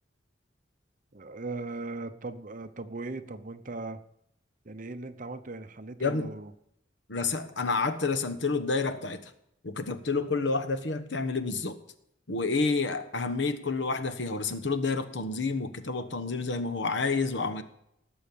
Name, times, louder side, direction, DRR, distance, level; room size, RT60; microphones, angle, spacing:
voice 1, 1.1-4.0 4.6-6.5, right 3 dB, 45° right, 10 dB, 0.9 m, -38 dB
voice 2, 6.0-6.3 7.1-9.3 9.6-11.8 12.3-17.6, left 4 dB, 70° left, 10 dB, 1.2 m, -29 dB
18.5 x 6.3 x 7.2 m, 0.75 s
head